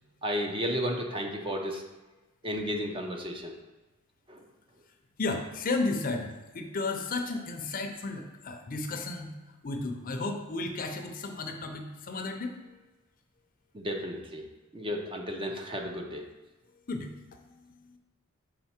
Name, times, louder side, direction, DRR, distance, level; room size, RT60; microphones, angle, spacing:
voice 1, 0.2-1.8 2.4-3.5 4.3-4.4 13.7-14.5 14.7-16.3, equal, 25° right, 2 dB, 0.6 m, -33 dB
voice 2, 5.2-9.4 9.6-12.8 16.9-17.4, left 3 dB, 45° left, 4 dB, 0.6 m, -33 dB
5.7 x 3.9 x 4.3 m, 1.2 s
head